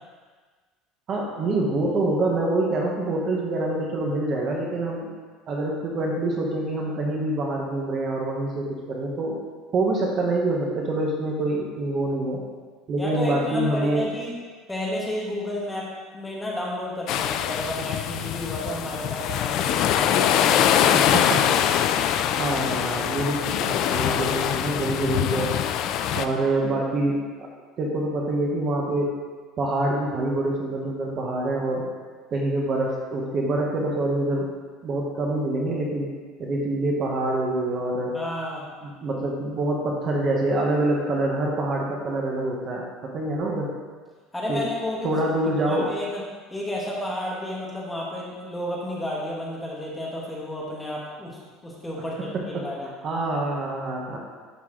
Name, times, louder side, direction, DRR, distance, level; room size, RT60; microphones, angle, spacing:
voice 1, 1.1-5.1 5.5-9.4 9.7-12.4 12.9-14.1 20.9-21.6 22.3-25.5 26.1-27.2 27.8-29.1 29.6-31.9 32.3-34.5 34.8-36.1 36.4-38.2 38.8-43.7 44.5-44.6 45.0-45.9 52.3-52.7 53.0-54.2, right 2 dB, 30° right, -1 dB, 0.9 m, -26 dB
voice 2, 13.0-14.3 14.7-15.9 16.1-21.0 38.1-38.6 44.3-45.1 45.4-46.2 46.5-52.9, left 1 dB, 5° left, -4 dB, 1.0 m, -32 dB
sound 1, 17.1-26.2, left 10 dB, 45° left, 0.3 m, -23 dB
11.0 x 4.0 x 3.7 m, 1.5 s
cardioid pair, 180°, 0 cm